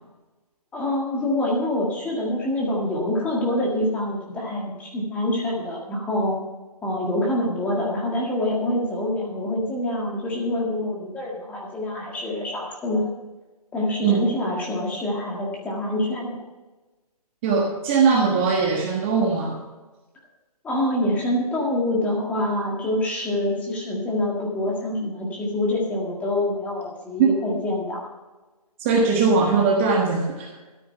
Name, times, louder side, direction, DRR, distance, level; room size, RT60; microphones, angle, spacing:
voice 1, 0.7-6.4 6.8-13.1 13.7-16.4 20.6-28.1, left 1 dB, 5° left, -2 dB, 1.8 m, -26 dB
voice 2, 17.4-19.6 27.2-27.4 28.8-30.5, right 5 dB, 20° right, 0 dB, 1.3 m, -20 dB
13.0 x 8.8 x 5.7 m, 1.2 s
hypercardioid pair, 160°, 20 cm